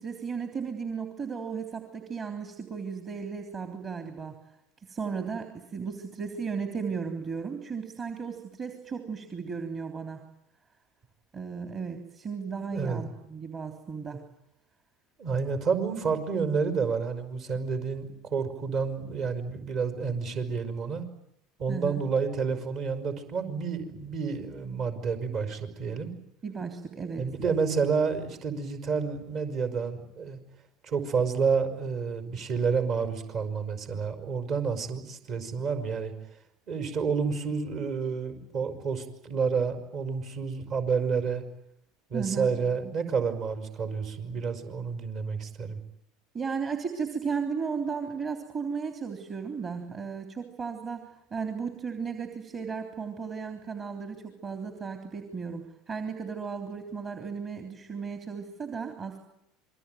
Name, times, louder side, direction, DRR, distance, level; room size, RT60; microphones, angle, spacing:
voice 1, 0.0-4.4 4.9-10.2 11.3-14.3 21.7-22.0 26.4-27.2 42.1-42.9 46.3-59.2, right 5 dB, 35° right, 4 dB, 3.4 m, -35 dB
voice 2, 12.7-13.1 15.2-21.1 21.6-26.1 27.2-30.4 30.8-36.1 36.7-41.4 42.1-45.8, right 5 dB, 50° right, 8 dB, 5.4 m, -29 dB
27.5 x 22.5 x 9.4 m, 0.79 s
hypercardioid pair, 75°, 0 cm